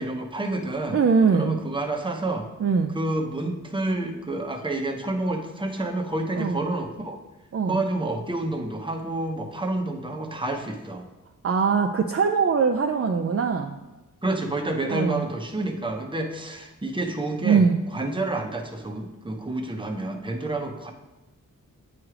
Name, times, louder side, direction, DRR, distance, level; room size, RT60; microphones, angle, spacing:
voice 1, 0.0-1.0 1.3-2.5 2.9-7.2 7.6-11.0 14.2-17.6 17.9-20.9, right 2 dB, 15° right, 2 dB, 0.8 m, -29 dB
voice 2, 0.9-1.6 2.6-2.9 6.4-6.6 7.5-7.8 11.4-13.7 14.9-15.2 17.4-17.8, right 5 dB, 45° right, 3 dB, 0.4 m, -22 dB
8.7 x 3.2 x 4.9 m, 1.1 s
wide cardioid pair, 80°, 34 cm